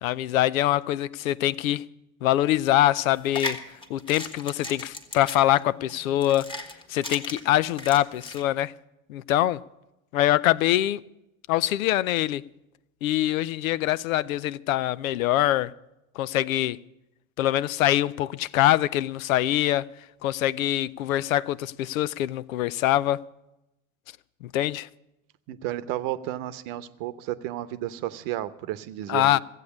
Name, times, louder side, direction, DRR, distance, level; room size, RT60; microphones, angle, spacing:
voice 1, 0.0-1.8 2.2-3.6 3.9-6.5 6.9-8.7 9.1-9.6 10.1-11.0 11.5-12.4 13.0-15.7 16.2-16.8 17.4-19.9 20.2-23.2 24.4-24.9 29.1-29.4, left 14 dB, 80° left, 0.6 m, -24 dB
sound 1, 3.1-8.4, left 2 dB, 10° left, 1.5 m, -37 dB
voice 2, 25.5-29.4, right 14 dB, 55° right, 0.9 m, -32 dB
14.5 x 8.2 x 8.5 m
hypercardioid pair, 100°, 41 cm